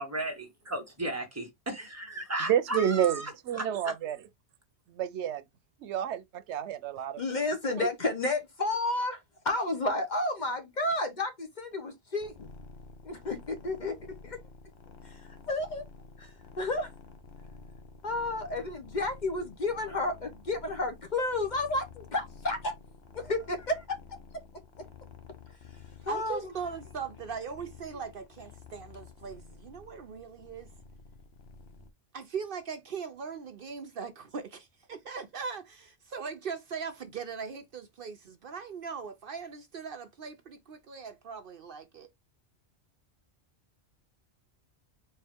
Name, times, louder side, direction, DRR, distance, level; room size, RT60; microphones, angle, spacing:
voice 1, 0.0-3.3 3.6-3.7, right 1 dB, 15° right, 1.5 m, -35 dB
voice 2, 2.4-4.2 4.9-5.5 5.8-7.2 7.6-7.9, right 9 dB, 90° right, 0.9 m, -30 dB
voice 3, 7.2-12.3 13.1-14.4 15.0-15.9 16.2-16.9 18.0-22.7 23.1-23.8 24.8-24.9 26.0-26.5, left 2 dB, 45° left, 0.9 m, -31 dB
sound 1, 12.2-31.9, left 5 dB, 65° left, 1.1 m, -51 dB
voice 4, 26.1-30.7 32.1-42.1, right 6 dB, 60° right, 0.8 m, -40 dB
4.5 x 2.8 x 3.5 m
omnidirectional pair, 1.1 m